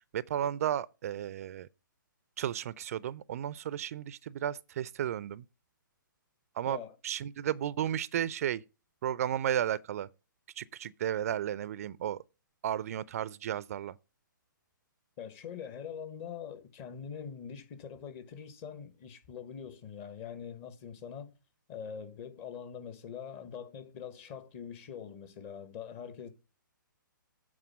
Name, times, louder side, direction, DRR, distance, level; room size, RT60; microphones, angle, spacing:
voice 1, 0.1-1.7 2.4-5.4 6.6-6.8 7.0-8.6 9.0-10.1 10.6-12.2 12.6-13.9, right 10 dB, 45° right, 0.4 m, -33 dB
voice 2, 6.7-7.0 15.2-21.3 21.7-26.3, left 7 dB, 35° left, 1.2 m, -43 dB
8.6 x 4.3 x 7.0 m
figure-of-eight pair, 125°, 11 cm